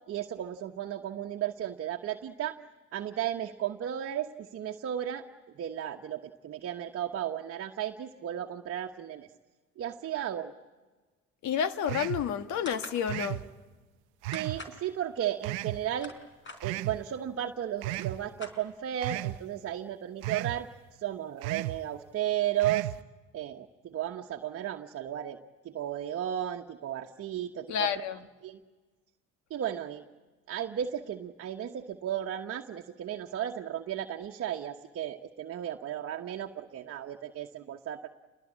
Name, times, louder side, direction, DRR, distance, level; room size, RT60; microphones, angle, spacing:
voice 1, 0.1-2.6 2.9-5.2 5.6-9.3 9.8-10.5 14.3-16.1 16.6-20.7 21.0-22.9 23.3-25.4 25.6-28.0 28.4-28.6 29.5-30.0 30.5-38.1, right 11 dB, 45° right, 3 dB, 1.2 m, -34 dB
voice 2, 11.4-13.4 27.7-28.2, left 8 dB, 65° left, 10 dB, 1.5 m, -30 dB
sound 1, 11.9-12.3 13.1-13.4 14.2-14.6 15.4-15.8 16.6-17.0 17.8-18.2 19.0-19.4 20.2-20.6 21.4-21.8 22.6-23.0, right 18 dB, 85° right, 0.7 m, -34 dB
sound 2, 12.7-13.0 14.3-14.8 15.7-16.6 17.5-17.6 17.8-19.0, left 2 dB, 35° left, 4.7 m, -45 dB
28.5 x 21.0 x 8.7 m, 1.3 s
supercardioid pair, 75°, 31 cm